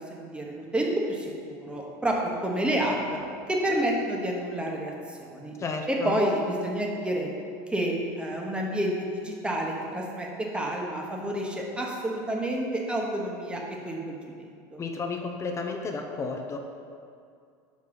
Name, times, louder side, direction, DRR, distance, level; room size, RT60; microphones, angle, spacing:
voice 1, 0.0-3.2 3.5-5.5 5.9-7.3 7.7-14.4 14.7-14.8, right 1 dB, 10° right, -1 dB, 1.1 m, -29 dB
voice 2, 5.6-6.2 14.8-16.6, left 4 dB, 30° left, 3 dB, 0.7 m, -32 dB
5.5 x 5.1 x 5.6 m, 2.3 s
supercardioid pair, 115°, 10 cm